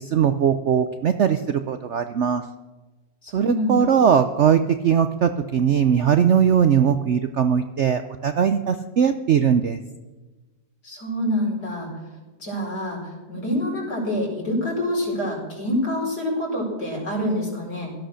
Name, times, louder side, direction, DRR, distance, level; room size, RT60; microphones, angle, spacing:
voice 1, 0.0-2.4 3.3-9.8, right 8 dB, 60° right, 9 dB, 0.7 m, -20 dB
voice 2, 3.2-4.0 10.8-12.0 12.4-18.0, left 1 dB, 65° left, -1 dB, 5.2 m, -26 dB
16.5 x 13.0 x 6.4 m, 1.2 s
omnidirectional pair, 1.9 m